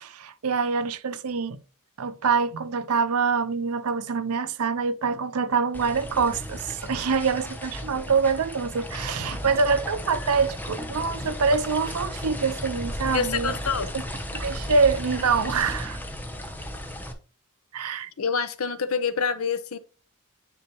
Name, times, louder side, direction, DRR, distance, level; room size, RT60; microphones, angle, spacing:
voice 1, 0.0-1.6 2.0-13.5 14.3-16.0 17.7-18.1, right 5 dB, 90° right, 0.6 m, -25 dB
sound 1, 5.7-17.1, equal, 10° left, 0.9 m, -35 dB
voice 2, 13.1-13.9 18.2-19.8, left 5 dB, 70° left, 0.8 m, -26 dB
9.8 x 4.3 x 3.0 m
head